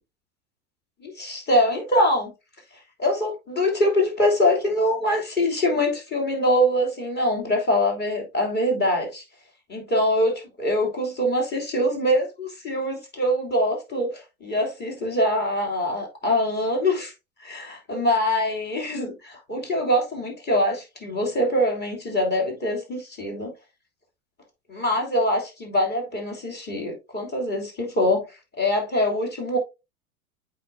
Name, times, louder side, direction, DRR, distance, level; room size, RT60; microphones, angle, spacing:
voice 1, 1.0-2.3 3.0-9.2 9.7-17.1 17.4-23.5 24.7-29.6, left 1 dB, 25° left, 3.1 m, -24 dB
8.2 x 5.1 x 2.7 m
figure-of-eight pair, 95°, 43 cm